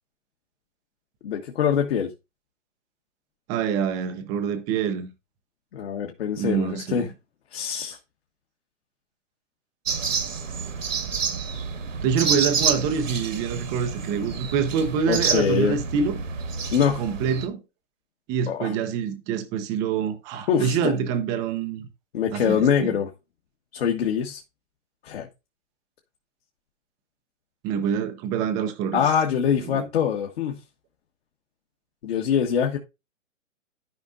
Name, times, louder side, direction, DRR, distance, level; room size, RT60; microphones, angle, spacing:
voice 1, 1.2-2.1 5.7-7.1 7.5-8.0 15.1-15.8 16.7-17.0 18.5-18.7 20.5-20.9 22.1-23.1 23.7-24.4 25.0-25.3 28.9-30.6 32.0-32.8, left 8 dB, 55° left, 1.6 m, -24 dB
voice 2, 3.5-5.1 6.4-7.1 12.0-16.2 17.0-17.6 18.3-21.9 22.3-22.6 27.6-29.0 29.6-29.9, right 7 dB, 10° right, 0.4 m, -26 dB
sound 1, 9.9-17.5, right 5 dB, 80° right, 1.6 m, -28 dB
13.5 x 5.3 x 2.5 m
hypercardioid pair, 140°, 38 cm